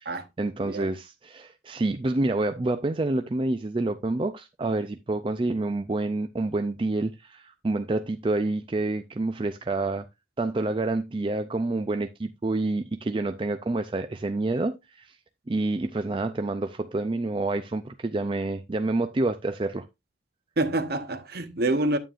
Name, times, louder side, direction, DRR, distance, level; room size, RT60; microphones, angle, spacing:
voice 1, 0.0-10.1 10.4-15.2 15.5-19.9, right 2 dB, 25° right, 0.4 m, -28 dB
voice 2, 20.6-22.0, right 2 dB, 55° right, 1.0 m, -26 dB
9.0 x 9.0 x 2.5 m
head